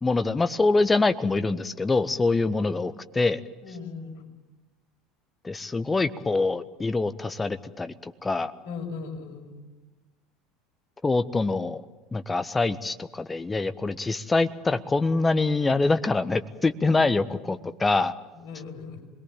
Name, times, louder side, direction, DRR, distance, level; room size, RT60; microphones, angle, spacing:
voice 1, 0.0-3.4 5.4-8.5 11.0-11.8 12.1-18.1, left 3 dB, 15° left, 11 dB, 1.4 m, -25 dB
voice 2, 3.6-4.2 8.6-9.6 15.7-15.8 16.9-17.0 17.5-17.6 18.3-19.0, left 5 dB, 60° left, 1 dB, 6.3 m, -38 dB
26.5 x 21.5 x 9.2 m, 1.2 s
figure-of-eight pair, 70°, 0 cm